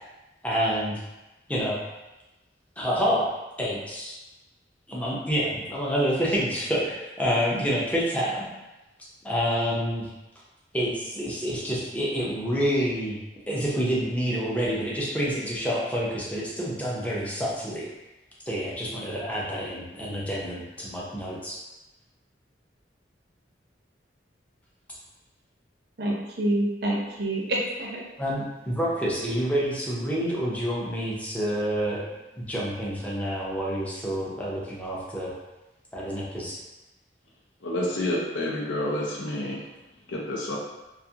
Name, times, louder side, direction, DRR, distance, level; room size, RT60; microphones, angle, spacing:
voice 1, 0.4-1.0 1.5-1.8 2.8-3.3 3.6-4.1 4.9-8.5 9.2-10.1 10.7-13.2 13.5-17.9 18.5-21.6 28.2-32.0 32.4-35.3 35.9-36.6, equal, 10° left, -6 dB, 0.5 m, -28 dB
voice 2, 26.0-28.1, right 1 dB, 60° right, -2 dB, 0.5 m, -27 dB
voice 3, 37.6-39.6 40.1-40.5, left 1 dB, 85° left, -3 dB, 0.6 m, -29 dB
2.4 x 2.4 x 2.7 m, 1.0 s
head